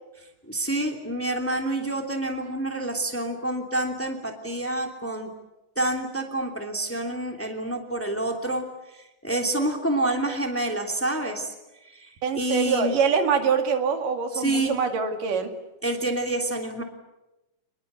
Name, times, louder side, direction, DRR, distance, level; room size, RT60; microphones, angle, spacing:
voice 1, 0.5-5.3 5.8-8.6 9.2-11.5 11.9-12.1 12.3-13.0 14.3-14.8 15.8-16.8, right 1 dB, 5° left, 3 dB, 2.5 m, -27 dB
voice 2, 12.2-15.5, right 6 dB, 85° right, 6 dB, 3.8 m, -24 dB
28.5 x 21.0 x 8.2 m, 0.99 s
omnidirectional pair, 3.7 m